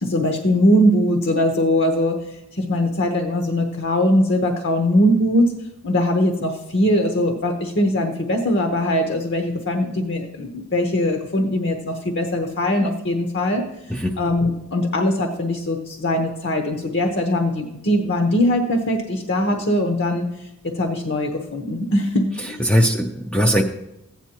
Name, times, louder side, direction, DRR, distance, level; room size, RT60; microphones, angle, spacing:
voice 1, 0.0-13.7 14.2-20.3 20.6-22.6, left 1 dB, 50° left, 4 dB, 0.9 m, -21 dB
voice 2, 22.6-23.6, equal, 5° left, 1 dB, 0.5 m, -19 dB
15.5 x 9.0 x 2.9 m, 0.90 s
head